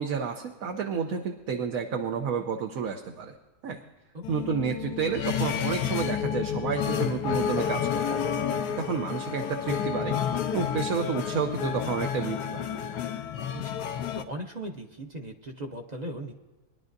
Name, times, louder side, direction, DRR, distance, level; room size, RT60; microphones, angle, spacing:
voice 1, 0.0-3.3 3.6-3.8 4.3-8.1 8.7-10.2 10.5-12.6, right 6 dB, 65° right, 3 dB, 1.2 m, -30 dB
voice 2, 4.1-4.5 13.5-13.8 14.1-16.3, right 1 dB, 35° right, 3 dB, 0.8 m, -38 dB
sound 1, 4.2-14.2, left 8 dB, 90° left, 1.3 m, -30 dB
22.0 x 11.0 x 2.6 m, 1.2 s
omnidirectional pair, 1.7 m